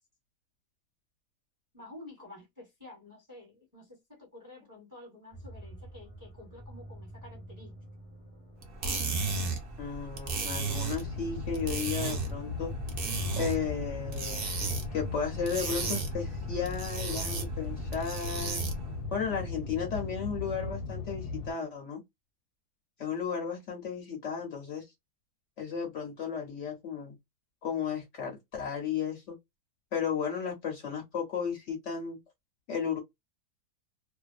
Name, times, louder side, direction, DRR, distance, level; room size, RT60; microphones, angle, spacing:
voice 1, 1.7-7.8, left 2 dB, 15° right, 0.9 m, -50 dB
sound 1, 5.3-19.5, right 1 dB, 5° left, 0.6 m, -49 dB
sound 2, 8.6-18.9, right 3 dB, 50° right, 0.7 m, -35 dB
voice 2, 9.8-12.7 13.4-14.4 14.9-18.6 19.1-22.0 23.0-24.9 25.6-27.2 27.6-29.4 29.9-32.2 32.7-33.0, left 7 dB, 60° left, 0.9 m, -34 dB
sound 3, 11.0-21.5, left 3 dB, 80° left, 1.3 m, -38 dB
2.6 x 2.1 x 2.3 m
omnidirectional pair, 1.7 m